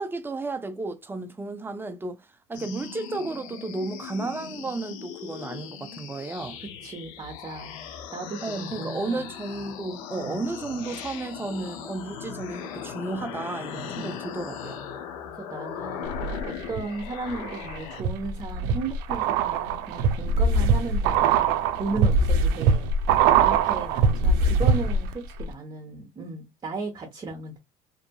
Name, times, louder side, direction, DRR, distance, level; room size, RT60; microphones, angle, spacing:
voice 1, 0.0-6.6 8.4-14.8, right 3 dB, 15° right, 0.5 m, -33 dB
sound 1, 2.5-18.0, left 8 dB, 90° left, 0.6 m, -38 dB
voice 2, 6.6-7.8 8.1-9.2 10.2-10.5 13.8-14.1 15.4-16.1 16.4-21.4 21.8-22.9 23.4-27.6, right 3 dB, 30° right, 0.9 m, -35 dB
sound 2, 16.1-16.8 17.3-25.1 25.4-25.5, right 4 dB, 80° right, 0.5 m, -22 dB
2.7 x 2.5 x 2.3 m
supercardioid pair, 90°, 16 cm